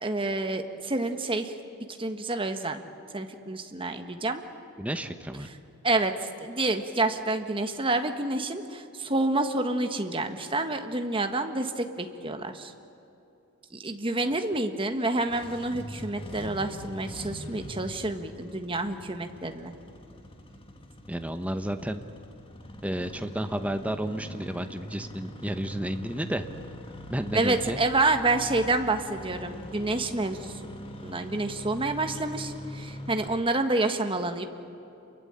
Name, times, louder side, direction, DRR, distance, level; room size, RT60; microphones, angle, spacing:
voice 1, 0.0-1.5 2.0-2.8 3.1-4.4 5.8-6.1 6.4-12.7 13.7-19.7 27.3-30.5 31.0-34.4, right 2 dB, 25° right, 6 dB, 1.4 m, -28 dB
voice 2, 4.8-5.5 21.1-22.0 22.8-26.5 27.1-27.8, right 1 dB, 5° right, 7 dB, 1.0 m, -31 dB
Engine starting, 15.1-33.3, equal, 25° left, 1.8 m, -43 dB
28.0 x 23.0 x 9.0 m, 2.8 s
head